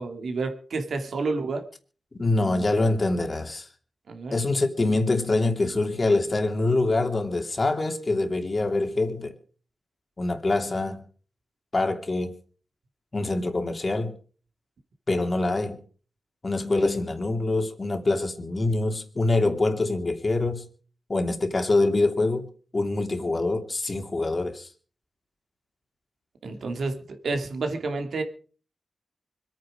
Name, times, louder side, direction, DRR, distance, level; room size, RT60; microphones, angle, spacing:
voice 1, 0.0-1.6 4.1-4.3 26.4-28.2, right 3 dB, 85° right, 2.6 m, -30 dB
voice 2, 2.1-3.7 4.3-9.4 10.2-11.0 11.7-12.3 13.1-14.1 15.1-15.8 16.4-20.7 21.1-24.7, left 2 dB, 35° left, 2.8 m, -25 dB
25.5 x 9.4 x 5.0 m
wide cardioid pair, 95°, 0 cm